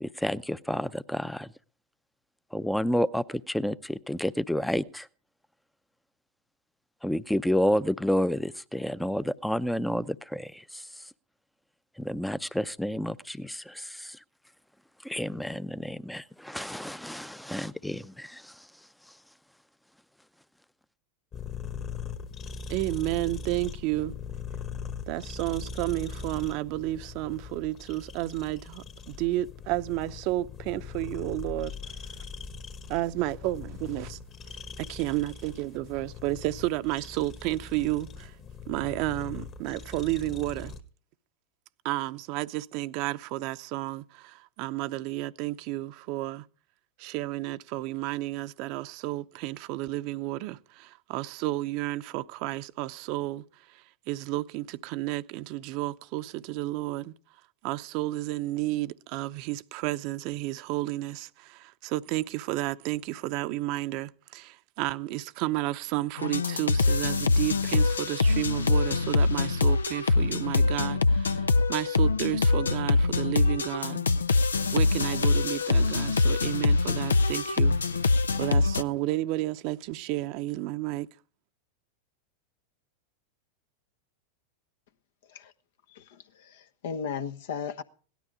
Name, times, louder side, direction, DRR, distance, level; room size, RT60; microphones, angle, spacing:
voice 1, 0.0-1.5 2.5-5.1 7.0-10.8 12.0-14.2 15.0-18.4, equal, 5° left, 0.6 m, -30 dB
sound 1, 21.3-40.8, left 5 dB, 35° left, 1.7 m, -41 dB
voice 2, 22.7-24.2 25.1-31.8 32.9-34.2 34.8-38.4 38.7-40.7 41.8-46.5 47.0-53.4 53.7-57.1 57.6-74.0 74.4-77.8 78.4-81.1, right 17 dB, 50° right, 0.7 m, -32 dB
sound 2, 66.2-78.8, left 3 dB, 85° left, 0.6 m, -24 dB
voice 3, 86.4-87.8, left 6 dB, 65° left, 1.1 m, -35 dB
17.0 x 12.5 x 5.0 m
hypercardioid pair, 95°, 0 cm